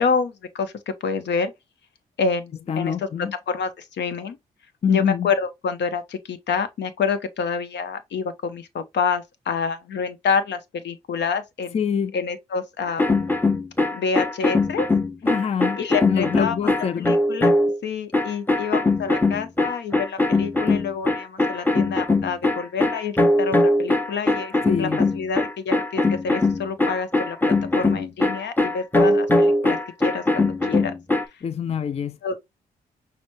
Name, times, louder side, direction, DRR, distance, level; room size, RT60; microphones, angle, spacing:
voice 1, 0.0-1.5 2.2-4.4 4.9-11.8 12.1-13.3 13.9-14.9 15.7-16.6 17.0-17.5 17.8-24.5 24.8-29.8 30.0-30.9 32.2-32.4, left 5 dB, 65° left, 0.8 m, -27 dB
voice 2, 2.7-3.3 4.8-5.3 11.7-12.1 15.2-17.1 24.7-25.0 31.4-32.2, left 7 dB, 35° left, 0.4 m, -25 dB
sound 1, 12.9-17.8 18.1-31.2, left 2 dB, 10° left, 0.9 m, -21 dB
6.0 x 2.2 x 3.0 m
hypercardioid pair, 40°, 19 cm